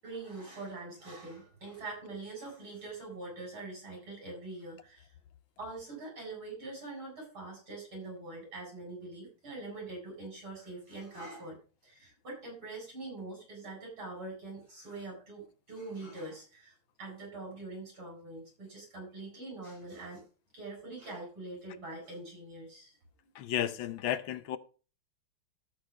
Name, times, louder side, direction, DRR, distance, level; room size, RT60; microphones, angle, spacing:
voice 1, 0.0-5.1 5.6-11.6 11.8-20.2 20.5-23.0, right 2 dB, 75° right, 8.5 m, -44 dB
voice 2, 23.3-24.6, left 11 dB, 75° left, 1.5 m, -33 dB
13.5 x 6.5 x 5.1 m
omnidirectional pair, 2.3 m